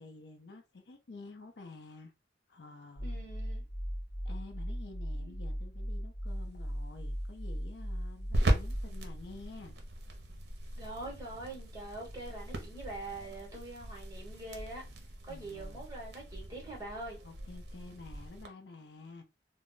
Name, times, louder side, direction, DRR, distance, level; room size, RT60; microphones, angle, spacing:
voice 1, 0.0-2.1 2.5-3.1 4.2-9.7 15.3-15.9 17.2-19.2, left 3 dB, 65° left, 0.5 m, -50 dB
sound 1, 3.0-8.8, equal, 45° left, 0.8 m, -38 dB
voice 2, 3.0-3.6 5.1-5.3 10.7-14.8 15.2-17.2, right 2 dB, 20° right, 1.0 m, -44 dB
sound 2, 6.3-18.5, right 1 dB, 65° right, 0.6 m, -38 dB
2.1 x 2.0 x 3.7 m
head